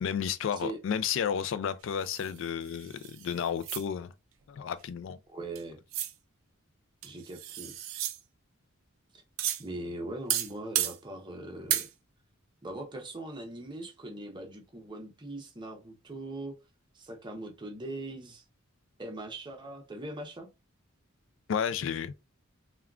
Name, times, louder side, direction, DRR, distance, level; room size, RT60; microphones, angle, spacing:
voice 1, 0.0-4.1 4.5-5.2 21.5-22.1, left 7 dB, 65° left, 0.3 m, -32 dB
sound 1, 2.0-3.8 5.5-5.6 5.9-6.1 7.0-8.2 9.4-9.6 10.3-11.0 11.7-11.9, right 12 dB, 70° right, 0.4 m, -33 dB
voice 2, 5.3-5.8 7.0-7.7 9.6-11.8 12.6-16.6 16.9-18.4 19.0-20.5, right 2 dB, 20° right, 0.6 m, -40 dB
3.5 x 2.2 x 2.3 m
head